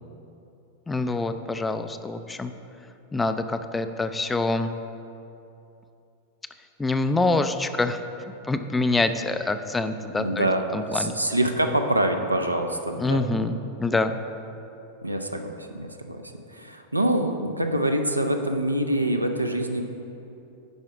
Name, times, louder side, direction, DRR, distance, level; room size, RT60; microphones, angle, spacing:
voice 1, 0.9-2.5 3.1-4.7 6.8-8.0 8.4-10.5 10.7-11.2 13.0-14.2, left 2 dB, 10° left, 9 dB, 0.4 m, -25 dB
voice 2, 10.2-10.6 10.9-13.2 15.0-16.2 16.5-19.8, right 1 dB, 85° right, 5 dB, 0.6 m, -25 dB
10.5 x 5.0 x 4.8 m, 2.8 s
figure-of-eight pair, 90°, 0 cm